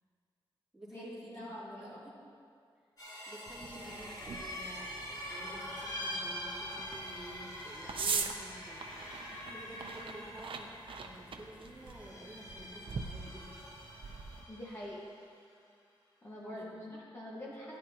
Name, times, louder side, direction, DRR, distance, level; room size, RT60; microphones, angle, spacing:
voice 1, 0.7-1.4 1.8-2.1 3.3-8.9 9.5-13.6 16.4-16.8, right 1 dB, 5° right, -8 dB, 2.7 m, -51 dB
voice 2, 1.3-2.0 14.5-15.1 16.2-17.8, left 1 dB, 30° left, -7 dB, 1.5 m, -44 dB
sound 1, 3.0-15.0, equal, 45° left, 2.0 m, -44 dB
sound 2, 3.5-14.4, right 5 dB, 70° right, 0.6 m, -43 dB
12.0 x 10.0 x 2.9 m, 2.2 s
wide cardioid pair, 110°, 9 cm